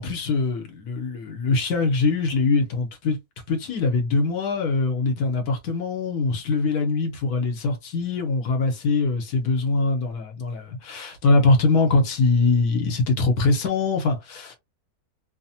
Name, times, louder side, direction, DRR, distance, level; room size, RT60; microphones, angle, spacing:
voice 1, 0.0-3.2 3.5-14.6, left 3 dB, 75° left, 1.4 m, -22 dB
3.1 x 2.1 x 2.7 m
omnidirectional pair, 1.6 m